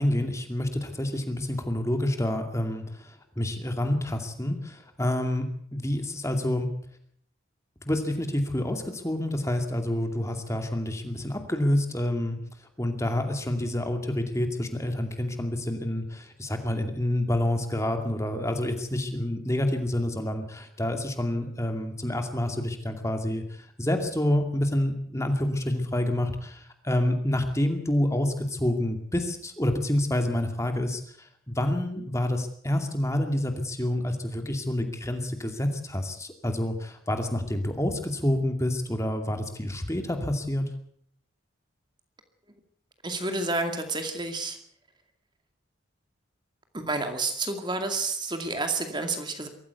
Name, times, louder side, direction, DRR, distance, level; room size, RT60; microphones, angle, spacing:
voice 1, 0.0-5.5 5.7-6.7 7.9-12.4 12.8-40.7, left 1 dB, 15° left, 6 dB, 2.4 m, -28 dB
voice 2, 43.0-44.6 46.7-49.5, right 3 dB, 20° right, 6 dB, 2.3 m, -30 dB
23.0 x 14.5 x 8.2 m, 0.64 s
head